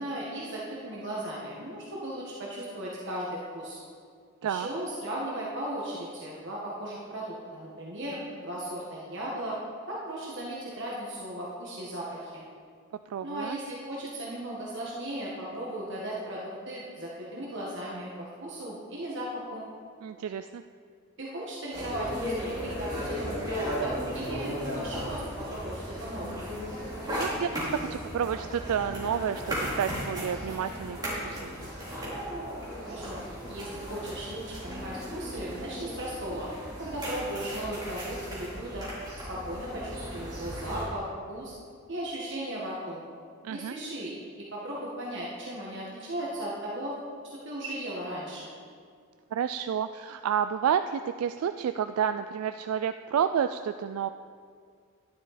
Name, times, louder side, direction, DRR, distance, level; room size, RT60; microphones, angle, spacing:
voice 1, 0.0-3.3 3.5-3.8 4.4-9.6 9.9-12.4 13.2-19.6 21.2-26.5 32.8-36.5 36.8-38.9 39.3-41.5 41.9-43.0 43.5-46.9 47.4-48.5, right 1 dB, 55° right, -5 dB, 1.6 m, -36 dB
voice 2, 13.1-13.6 20.0-20.6 27.2-31.5 43.4-43.7 49.3-54.1, right 8 dB, 80° right, 10 dB, 0.3 m, -30 dB
sound 1, 21.7-40.8, equal, 20° right, 3.4 m, -36 dB
12.0 x 10.5 x 4.2 m, 2.1 s
head